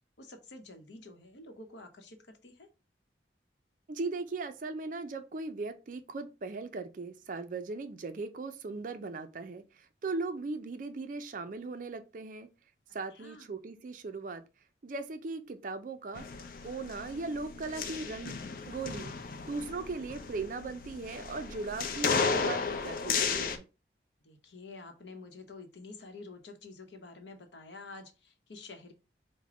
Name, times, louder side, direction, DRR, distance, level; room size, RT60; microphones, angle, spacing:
voice 1, 0.2-2.7 13.1-13.5 24.2-28.9, left 3 dB, 80° left, 0.8 m, -49 dB
voice 2, 3.9-12.5 12.9-14.4 14.8-16.3 16.6-19.1 19.5-23.7, right 3 dB, 45° right, 0.4 m, -38 dB
sound 1, 16.1-23.6, left 5 dB, 50° left, 0.5 m, -34 dB
4.9 x 2.1 x 3.7 m
head